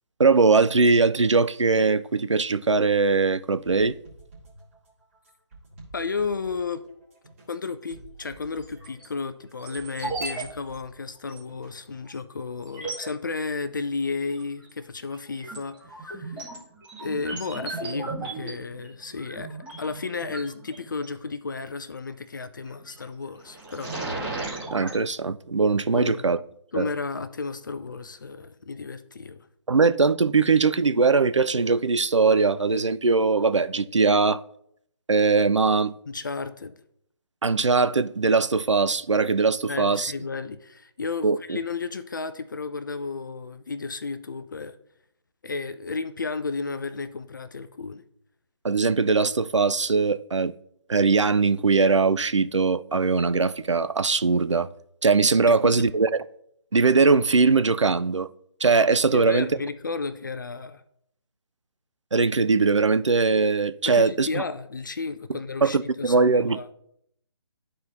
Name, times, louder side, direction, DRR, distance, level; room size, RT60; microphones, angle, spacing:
voice 1, 0.2-3.9 24.7-26.4 26.7-26.9 29.7-34.4 35.1-35.9 37.4-40.1 41.2-41.6 48.6-50.5 50.9-54.7 55.0-56.2 56.7-58.3 58.6-59.5 62.1-64.4 65.6-66.6, right 4 dB, 85° right, 0.4 m, -21 dB
sound 1, 3.7-12.1, right 3 dB, 30° right, 2.1 m, -49 dB
voice 2, 5.9-6.8 7.5-16.5 17.0-24.0 25.9-26.3 26.7-29.4 36.1-36.7 39.7-44.8 45.4-48.0 55.6-55.7 59.1-60.8 63.9-66.7, left 4 dB, 45° left, 0.4 m, -33 dB
sound 2, 8.6-9.1 9.6-10.4 10.7-10.8 11.3-11.4 12.1-12.2 12.6-13.1 14.3-14.7 15.1-21.0 22.6-23.0 23.4-25.0, right 3 dB, 10° right, 1.3 m, -36 dB
12.0 x 4.2 x 2.6 m
figure-of-eight pair, 145°, 15 cm